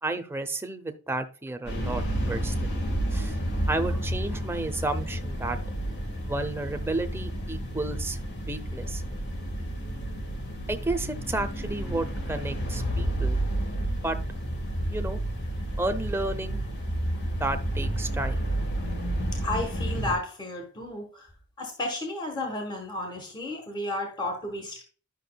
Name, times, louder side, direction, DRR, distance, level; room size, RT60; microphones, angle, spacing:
voice 1, 0.0-2.7 3.1-3.3 3.7-5.6 6.2-8.2 8.5-9.0 10.7-13.4 14.0-14.2 14.9-15.2 15.8-16.6 17.4-18.4, right 2 dB, 10° right, 7 dB, 0.7 m, -32 dB
sound 1, 1.7-20.2, right 1 dB, 50° left, 1.6 m, -30 dB
voice 2, 19.4-21.3 21.6-24.8, left 2 dB, 20° left, 3 dB, 1.3 m, -33 dB
11.0 x 6.1 x 2.3 m, 0.38 s
head